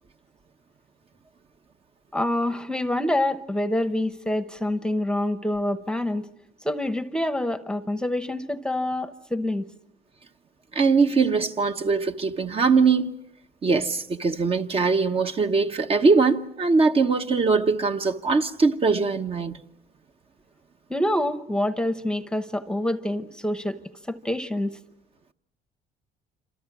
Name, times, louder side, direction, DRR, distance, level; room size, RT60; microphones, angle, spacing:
voice 1, 2.1-6.3 6.6-9.6 20.9-23.8 24.1-24.8, left 1 dB, 5° left, 0.9 m, -26 dB
voice 2, 10.7-13.1 13.6-19.6, right 4 dB, 35° right, 1.1 m, -21 dB
27.5 x 26.5 x 6.1 m
cardioid pair, 110°, 17 cm